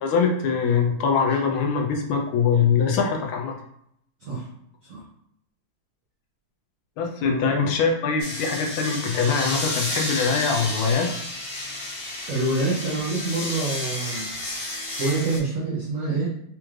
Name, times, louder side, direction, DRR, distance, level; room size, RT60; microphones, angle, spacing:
voice 1, 0.0-3.6 7.0-11.1, left 5 dB, 75° left, 2 dB, 1.4 m, -23 dB
sound 1, 8.2-15.4, left 1 dB, 40° left, 0.8 m, -31 dB
voice 2, 12.3-14.3 15.0-16.3, right 3 dB, 75° right, -4 dB, 0.7 m, -26 dB
4.4 x 2.4 x 3.1 m, 0.72 s
omnidirectional pair, 2.4 m